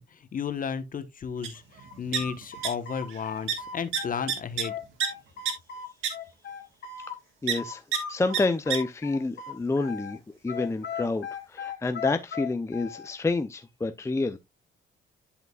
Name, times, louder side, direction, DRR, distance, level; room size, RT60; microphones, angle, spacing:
voice 1, 0.0-1.6 2.0-4.7, left 6 dB, 45° left, 1.1 m, -33 dB
sound 1, 1.4-1.5 1.8-2.7 3.0-3.2 3.5-3.6 3.9-5.1 5.5-5.6 6.0-6.1 7.5-7.6 7.9-8.0 8.3-8.4 8.7-8.8, right 8 dB, 85° right, 1.6 m, -28 dB
sound 2, 1.8-4.3 4.6-7.2 7.6-10.2 10.5-13.1, left 6 dB, 70° left, 2.0 m, -37 dB
voice 2, 7.4-7.8 8.1-14.4, left 3 dB, 15° left, 0.6 m, -29 dB
11.0 x 5.0 x 2.4 m
cardioid pair, 90°, 20 cm